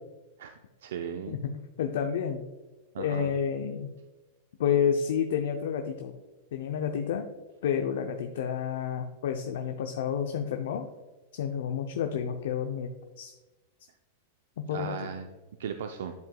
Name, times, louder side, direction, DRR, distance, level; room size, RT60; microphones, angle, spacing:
voice 1, 0.4-1.4 2.9-3.4 14.7-15.3 15.6-16.1, right 7 dB, 75° right, 7 dB, 0.4 m, -37 dB
voice 2, 1.8-2.4 3.0-3.9 4.6-6.1 6.5-7.3 7.6-10.8 11.3-12.9 13.2-13.3 14.6-15.0, left 8 dB, 70° left, 5 dB, 0.5 m, -30 dB
10.5 x 4.6 x 2.2 m, 1.2 s
hypercardioid pair, 110°, 0 cm